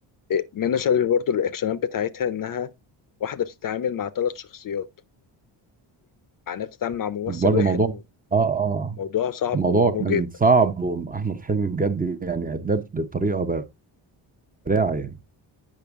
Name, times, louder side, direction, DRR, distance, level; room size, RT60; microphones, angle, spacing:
voice 1, 0.3-2.7 3.2-4.8 6.5-8.0 9.0-10.2, left 8 dB, 45° left, 0.6 m, -26 dB
voice 2, 7.3-7.9 8.3-9.0 9.5-13.6 14.7-15.2, right 4 dB, 20° right, 0.6 m, -23 dB
8.6 x 5.9 x 3.5 m
cardioid pair, 145°, 47 cm